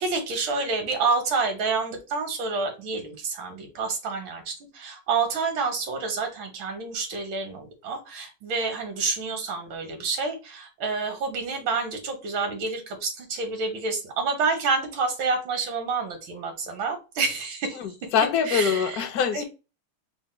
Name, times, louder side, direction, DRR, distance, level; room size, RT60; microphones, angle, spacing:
voice 1, 0.0-17.8 18.5-18.9 19.3-19.4, right 4 dB, 85° right, 1.9 m, -28 dB
voice 2, 17.7-19.4, left 7 dB, 70° left, 0.9 m, -24 dB
4.2 x 2.2 x 4.2 m
omnidirectional pair, 2.1 m